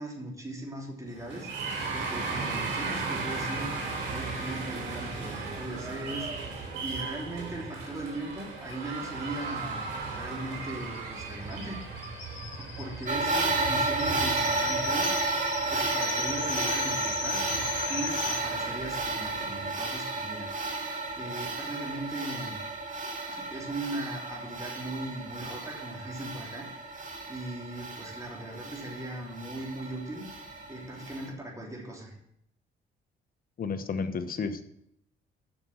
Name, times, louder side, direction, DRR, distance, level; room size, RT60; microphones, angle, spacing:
voice 1, 0.0-3.7 4.1-11.8 12.6-15.1 15.7-17.6 17.9-20.9 21.2-22.6 23.3-26.9 27.3-32.1, right 1 dB, 15° right, -2 dB, 3.3 m, -39 dB
sound 1, 1.1-19.7, right 3 dB, 85° right, 3.4 m, -37 dB
sound 2, 8.7-8.8 9.0-9.1 9.4-18.4, left 6 dB, 70° left, 1.6 m, -38 dB
sound 3, 13.1-31.3, right 3 dB, 40° right, 2.1 m, -32 dB
voice 2, 33.6-34.6, left 5 dB, 45° left, 9 dB, 1.0 m, -32 dB
7.7 x 6.1 x 7.3 m, 0.75 s
cardioid pair, 90°, 20 cm